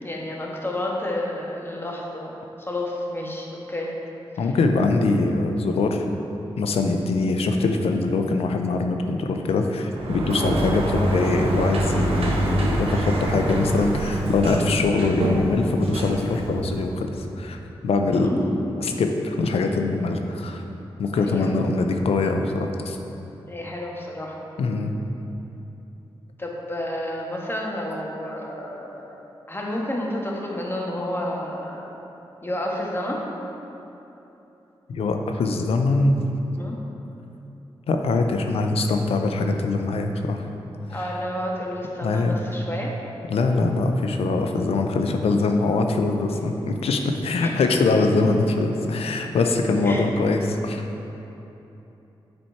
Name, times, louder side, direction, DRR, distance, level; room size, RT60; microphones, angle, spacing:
voice 1, 0.0-3.9 4.4-4.5 18.1-18.5 21.2-21.5 23.5-24.5 26.4-29.1 29.5-31.9 32.4-33.2 36.5-36.8 40.9-42.9 47.4-47.5 49.8-50.2, left 1 dB, 20° left, -2 dB, 1.4 m, -30 dB
voice 2, 4.4-6.0 6.6-17.6 17.8-18.3 18.8-20.6 21.0-23.0 24.6-24.9 34.9-36.1 37.9-40.4 40.9-41.2 42.0-42.4 43.3-50.9, left 3 dB, 80° left, 4 dB, 0.6 m, -23 dB
Sliding door, 9.9-17.0, right 1 dB, 75° right, 0.9 m, -25 dB
7.7 x 4.3 x 4.5 m, 3.0 s
supercardioid pair, 45°, 10 cm